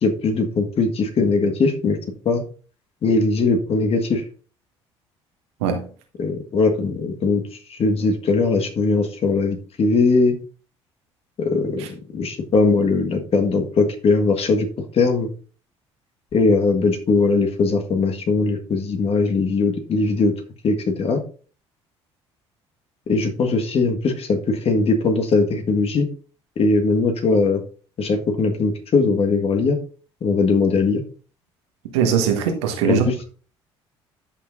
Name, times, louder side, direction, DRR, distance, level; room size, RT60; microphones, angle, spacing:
voice 1, 0.0-2.0 2.2-2.4 3.0-4.2 6.2-7.4 7.7-10.4 11.4-11.8 12.1-14.7 14.9-15.3 16.3-20.3 20.6-21.2 23.1-26.1 26.6-27.6 28.0-29.8 30.2-31.0 32.9-33.1, left 3 dB, 40° left, 1.6 m, -20 dB
voice 2, 31.9-33.0, right 7 dB, 70° right, 1.4 m, -21 dB
13.0 x 6.0 x 2.6 m
figure-of-eight pair, 55°, 15 cm